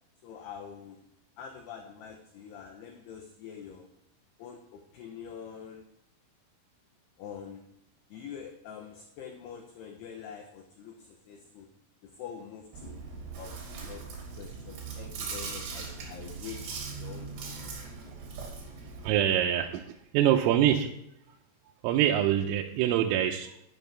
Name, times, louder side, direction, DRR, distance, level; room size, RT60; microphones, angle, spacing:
voice 1, 0.2-1.0 1.4-3.9 4.4-5.8 7.2-7.6 8.1-11.7 12.0-13.0 13.3-17.7, left 7 dB, 75° left, 4 dB, 2.5 m, -45 dB
Chewing mastication, 12.7-19.1, right 5 dB, 60° right, 4.3 m, -40 dB
voice 2, 19.0-20.9 21.8-23.6, right 11 dB, 85° right, 2 dB, 3.3 m, -25 dB
12.0 x 11.0 x 3.4 m, 0.80 s
omnidirectional pair, 6.0 m